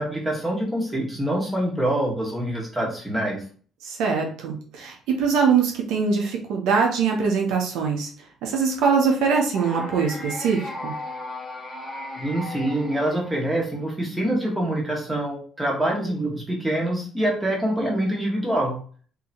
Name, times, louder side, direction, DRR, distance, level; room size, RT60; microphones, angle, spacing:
voice 1, 0.0-3.4 12.2-18.7, right 1 dB, 10° right, -2 dB, 1.5 m, -25 dB
voice 2, 3.8-8.1 8.4-10.9, right 5 dB, 80° right, 1 dB, 0.9 m, -22 dB
sound 1, 9.5-13.7, left 1 dB, 15° left, 1.0 m, -36 dB
3.8 x 2.9 x 2.9 m, 0.43 s
cardioid pair, 105°, 0 cm